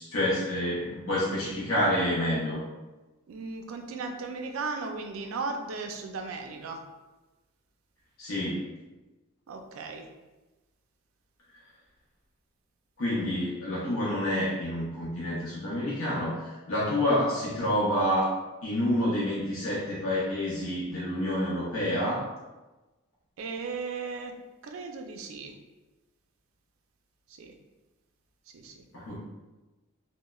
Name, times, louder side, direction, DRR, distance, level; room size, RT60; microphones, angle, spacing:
voice 1, 0.0-2.6 8.2-8.6 13.0-18.3 18.6-22.3 28.9-29.2, left 1 dB, 75° left, -7 dB, 0.6 m, -28 dB
voice 2, 3.3-6.8 9.5-10.1 23.4-24.3 24.6-25.6 27.3-27.5 28.5-28.8, right 4 dB, 70° right, 4 dB, 0.3 m, -36 dB
3.0 x 2.0 x 2.2 m, 1.1 s
head